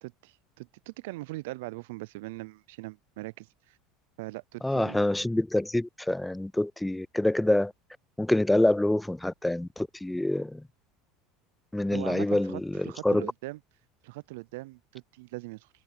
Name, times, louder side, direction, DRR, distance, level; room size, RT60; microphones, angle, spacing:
voice 1, 0.0-3.8 4.2-5.1 11.9-13.6 14.0-15.7, right 21 dB, 75° right, 0.5 m, -41 dB
voice 2, 4.6-7.7 8.2-10.6 11.7-13.3, left 1 dB, 5° left, 0.4 m, -26 dB
hypercardioid pair, 85°, 0 cm